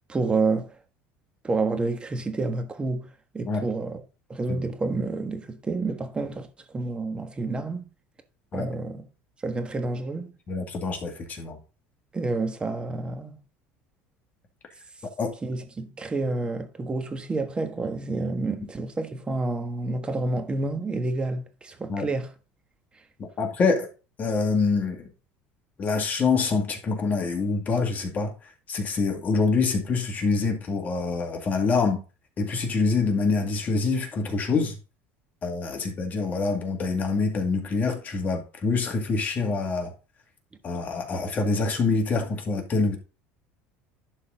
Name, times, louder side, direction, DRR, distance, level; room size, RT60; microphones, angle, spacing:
voice 1, 0.1-0.7 1.4-3.1 3.3-4.0 4.3-7.9 8.5-9.0 9.4-10.3 12.1-13.3 15.4-22.3, right 3 dB, 20° right, 1.4 m, -29 dB
voice 2, 10.5-11.6 15.2-15.3 21.9-22.0 23.4-23.9 24.2-25.1 25.8-28.3 28.7-32.0 32.4-34.8 35.4-39.9 40.6-43.0, left 4 dB, 35° left, 2.1 m, -25 dB
11.5 x 4.1 x 3.9 m
cardioid pair, 120°, 5 cm